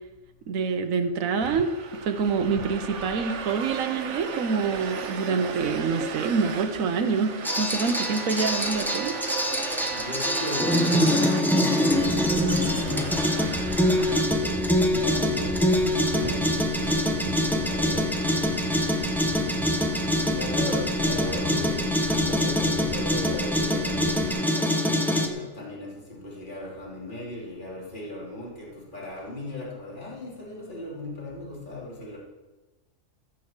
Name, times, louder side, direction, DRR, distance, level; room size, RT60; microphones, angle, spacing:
voice 1, 0.5-1.7 2.0-9.2, right 5 dB, 85° right, 7 dB, 1.3 m, -26 dB
sound 1, 1.4-20.7, right 6 dB, 65° right, 1.2 m, -37 dB
sound 2, 7.4-25.3, equal, ahead, 0.9 m, -24 dB
voice 2, 9.9-13.4 13.9-18.4 20.3-32.2, left 2 dB, 35° left, -5 dB, 3.4 m, -37 dB
sound 3, 11.9-24.3, left 1 dB, 70° left, 2.3 m, -38 dB
14.5 x 6.4 x 7.3 m, 1.2 s
omnidirectional pair, 1.4 m